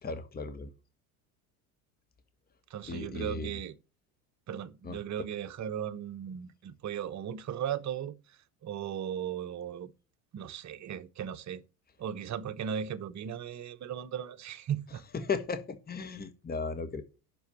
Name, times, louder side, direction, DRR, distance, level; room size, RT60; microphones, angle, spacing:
voice 1, 0.0-0.7 2.9-3.5 4.8-5.0 15.1-17.0, left 4 dB, 20° left, 1.3 m, -35 dB
voice 2, 2.7-3.8 4.5-8.1 8.6-9.9 10.3-11.6 12.0-15.0, right 9 dB, 35° right, 1.0 m, -37 dB
7.0 x 6.3 x 7.2 m
hypercardioid pair, 75°, 46 cm